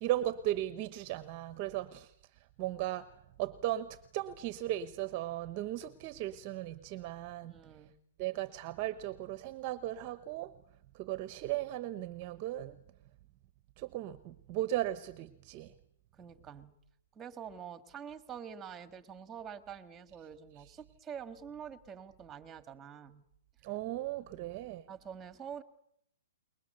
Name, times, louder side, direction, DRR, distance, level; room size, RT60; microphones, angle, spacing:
voice 1, 0.0-2.1 2.6-3.1 3.4-7.6 8.2-10.5 10.9-12.8 13.8-15.7 23.6-24.9, right 14 dB, 30° right, 13 dB, 1.0 m, -36 dB
voice 2, 1.6-1.9 7.4-7.9 16.1-16.8 17.1-23.2 24.9-25.6, right 7 dB, 15° right, 10 dB, 1.7 m, -47 dB
29.0 x 21.5 x 6.7 m, 0.73 s
hypercardioid pair, 155°, 0 cm